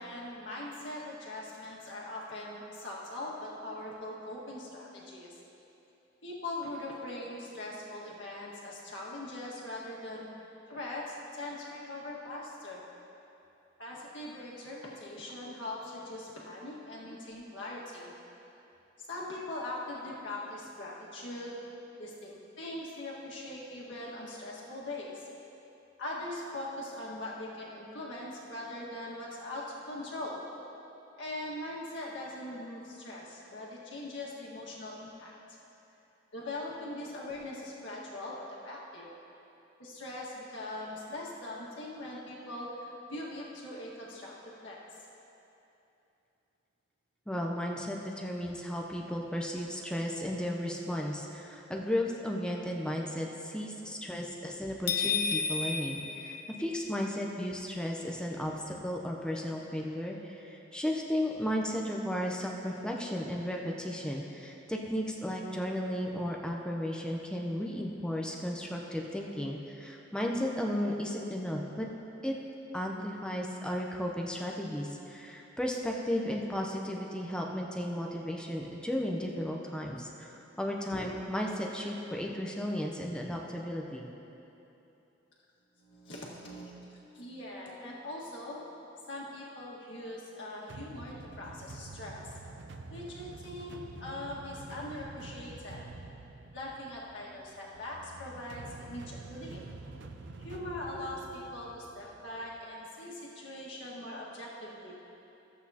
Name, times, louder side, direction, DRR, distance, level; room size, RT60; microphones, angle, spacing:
voice 1, 0.0-5.3 6.2-10.3 10.7-12.8 13.8-18.1 19.0-21.5 22.0-25.2 26.0-30.4 31.2-35.3 36.3-39.1 39.8-44.8 80.4-80.6 85.8-88.6 89.1-92.3 92.9-95.8 96.5-99.6 100.4-105.0, left 1 dB, 70° left, -5 dB, 1.7 m, -41 dB
voice 2, 47.3-71.9 72.2-72.3 72.7-84.1 100.9-101.2, equal, 5° left, -1 dB, 0.6 m, -34 dB
sound 1, 54.9-57.0, left 5 dB, 50° left, 0.6 m, -32 dB
sound 2, 90.7-102.6, right 3 dB, 65° right, 0.5 m, -48 dB
14.5 x 8.2 x 2.8 m, 3.0 s
head